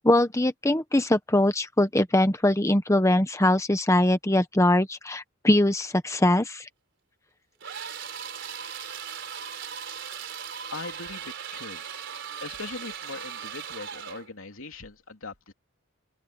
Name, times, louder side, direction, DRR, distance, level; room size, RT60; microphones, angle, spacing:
voice 1, 0.0-6.7, left 1 dB, 15° left, 1.1 m, -22 dB
sound 1, 7.6-14.3, right 8 dB, 60° right, 4.1 m, -38 dB
voice 2, 10.7-11.8 12.4-15.5, left 3 dB, 80° left, 3.1 m, -40 dB
open air
head